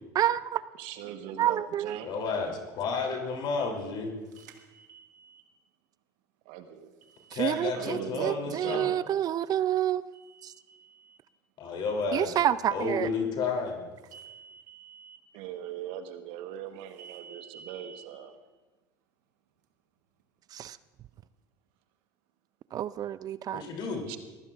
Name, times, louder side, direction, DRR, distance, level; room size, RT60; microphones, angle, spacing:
voice 1, 0.1-0.6 1.4-2.0 7.3-10.0 10.4-10.5 12.1-13.1 20.5-20.8 22.7-23.6, right 11 dB, 40° right, 17 dB, 0.4 m, -28 dB
voice 2, 0.8-2.1 6.4-6.9 7.7-9.0 15.3-18.4 24.1-24.2, right 9 dB, 70° right, 8 dB, 1.2 m, -39 dB
voice 3, 2.0-4.1 7.3-8.9 11.6-12.4 12.7-13.8 23.5-24.0, left 4 dB, 55° left, 2 dB, 3.1 m, -31 dB
sound 1, 4.3-5.4 7.0-8.1 10.1-11.2 14.0-15.2 17.0-18.0, right 7 dB, 85° right, 1.3 m, -52 dB
23.0 x 16.0 x 2.5 m, 1.2 s
hypercardioid pair, 80°, 9 cm